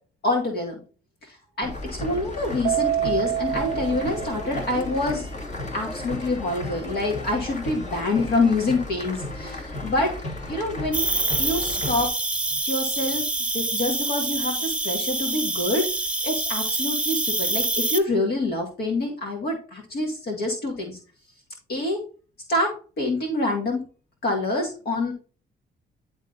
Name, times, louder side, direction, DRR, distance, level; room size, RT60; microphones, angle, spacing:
voice 1, 0.2-0.8 1.2-5.3 5.7-10.2 10.5-11.1 11.4-12.1 12.7-13.3 13.5-15.9 16.2-21.0 21.7-22.0 22.5-23.8 24.2-25.1, left 2 dB, 65° left, 1 dB, 2.1 m, -26 dB
sound 1, 1.6-12.1, left 2 dB, 40° left, 2.4 m, -34 dB
Keyboard (musical), 2.6-5.1, right 11 dB, 60° right, 0.4 m, -27 dB
Cricket, 10.9-18.0, right 2 dB, 5° right, 0.8 m, -26 dB
10.5 x 3.6 x 3.9 m, 0.36 s
cardioid pair, 105°, 18 cm